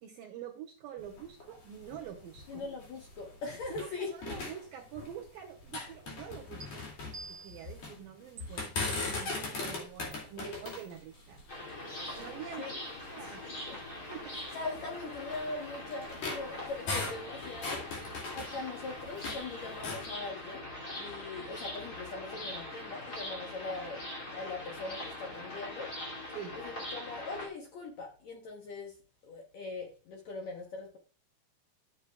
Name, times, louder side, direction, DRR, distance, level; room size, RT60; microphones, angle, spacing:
voice 1, 0.0-2.7 3.7-6.8 7.4-11.4 12.2-12.6 13.1-13.4 14.1-14.4 26.4-26.5, right 9 dB, 70° right, 1 dB, 2.4 m, -46 dB
sound 1, 1.0-3.9 4.2-5.3 5.6-8.0 8.4-12.4 13.0-13.1 13.6-13.8 14.5-19.4 19.7-20.1, left 3 dB, 45° left, 3.2 m, -39 dB
voice 2, 2.5-4.1 12.0-12.2 12.6-12.8 13.2-13.8 14.3-18.0 18.3-20.7 21.0-24.1 24.3-25.9 26.5-29.0 29.2-31.0, left 3 dB, 75° left, 1 dB, 1.6 m, -41 dB
sound 2, 6.6-6.7 7.1-7.7 8.4-8.5 8.9-9.4 10.1-10.2 10.7-10.9, right 6 dB, 45° right, 2.0 m, -47 dB
sound 3, 11.5-27.5, left 1 dB, 25° left, 2.5 m, -42 dB
12.0 x 7.3 x 2.3 m, 0.37 s
omnidirectional pair, 4.8 m